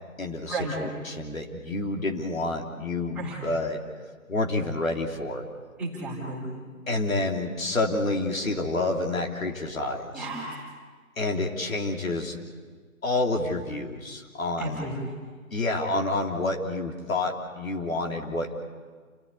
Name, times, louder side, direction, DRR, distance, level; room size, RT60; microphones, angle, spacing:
voice 1, 0.2-3.8 4.3-5.4 6.9-10.3 11.2-12.4 13.0-14.8 15.5-18.5, left 2 dB, 70° left, 2 dB, 3.3 m, -28 dB
voice 2, 5.8-6.5 10.1-10.5 14.6-15.2, right 2 dB, 5° right, -7 dB, 3.8 m, -33 dB
28.5 x 15.0 x 9.8 m, 1.5 s
figure-of-eight pair, 160°, 43 cm